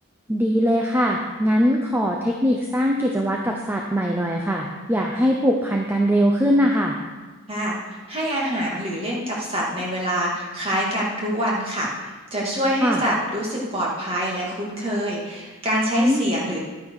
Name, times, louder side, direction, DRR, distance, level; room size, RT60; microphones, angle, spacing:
voice 1, 0.3-7.0 12.8-13.0 16.0-16.4, equal, 10° right, 0 dB, 0.7 m, -21 dB
voice 2, 7.5-7.8 8.1-16.6, equal, 25° right, -4 dB, 2.4 m, -25 dB
11.5 x 9.2 x 4.9 m, 1.3 s
head